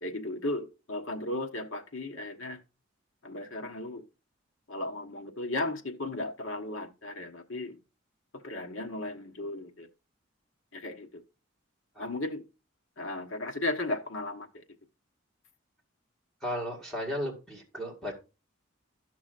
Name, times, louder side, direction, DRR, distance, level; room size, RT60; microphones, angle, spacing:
voice 1, 0.0-2.6 3.2-4.0 4.7-7.8 8.3-9.9 10.7-11.2 12.0-12.4 13.0-14.6, left 2 dB, 80° left, 1.2 m, -35 dB
voice 2, 16.4-18.1, equal, ahead, 1.9 m, -35 dB
13.0 x 6.0 x 2.5 m
head